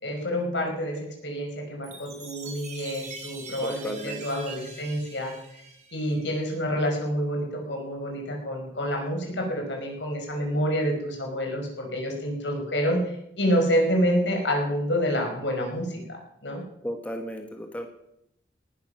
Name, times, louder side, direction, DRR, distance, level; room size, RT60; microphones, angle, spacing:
voice 1, 0.0-5.3 5.9-13.0 13.4-16.6, equal, 80° left, 1 dB, 5.3 m, -28 dB
Chime, 1.8-6.4, right 5 dB, 40° right, 4.2 m, -43 dB
voice 2, 3.6-4.2 16.8-17.9, equal, 10° left, 4 dB, 1.4 m, -34 dB
19.0 x 11.0 x 5.9 m, 0.78 s
head